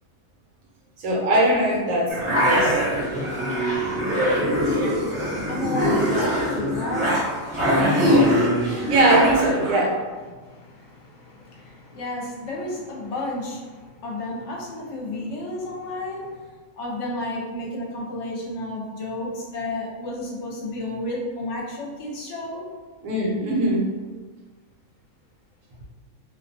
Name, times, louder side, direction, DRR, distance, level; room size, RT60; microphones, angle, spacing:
voice 1, 1.0-2.8 4.7-5.2 8.7-10.0 23.0-23.8, right 1 dB, 75° right, -3 dB, 1.1 m, -21 dB
sound 1, 2.1-9.8, equal, 30° right, 0.6 m, -22 dB
voice 2, 2.7-8.9 10.3-16.4 16.7-22.7, left 2 dB, 65° left, -3 dB, 0.9 m, -33 dB
2.6 x 2.1 x 2.7 m, 1.4 s
omnidirectional pair, 1.4 m